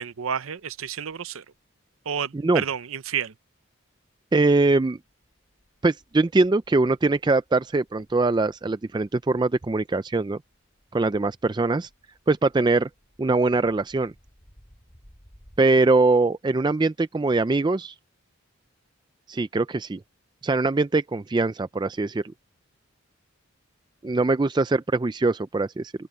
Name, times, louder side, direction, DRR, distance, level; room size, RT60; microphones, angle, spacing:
voice 1, 0.0-1.4 2.1-3.3, right 7 dB, 80° right, 0.7 m, -30 dB
sound 1, 0.6-1.6 4.2-4.3 4.5-15.6, equal, 25° left, 6.8 m, -60 dB
voice 2, 4.3-5.0 5.8-10.4 10.9-11.9 12.3-12.9 13.2-14.1 15.6-17.9 19.3-20.0 20.4-22.2 24.0-25.9, right 3 dB, 20° right, 0.3 m, -22 dB
open air
head